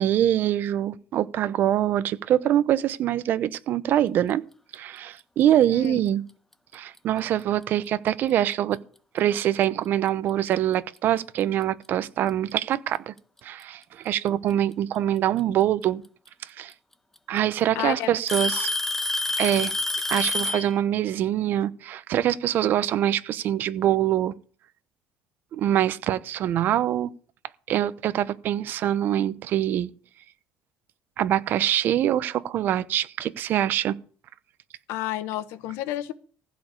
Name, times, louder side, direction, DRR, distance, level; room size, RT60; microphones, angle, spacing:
voice 1, 0.0-4.4 4.7-6.2 6.7-8.8 9.1-13.1 13.4-16.0 16.4-16.7 17.3-18.7 19.4-19.7 20.1-24.3 25.5-27.1 27.7-29.9 31.2-34.0, right 11 dB, 50° right, 0.8 m, -24 dB
Alarm / Tick-tock, 6.7-7.0 7.9-8.0 8.7-8.8 10.5-10.6 11.8-11.9 13.2-13.6 15.4-15.5 16.7-16.8 17.2-17.6 18.3-20.7, left 2 dB, 10° left, 0.7 m, -27 dB
voice 2, 17.7-18.1 18.5-18.7 34.9-36.1, left 13 dB, 80° left, 1.2 m, -30 dB
15.5 x 5.2 x 8.2 m
cardioid pair, 145°, 4 cm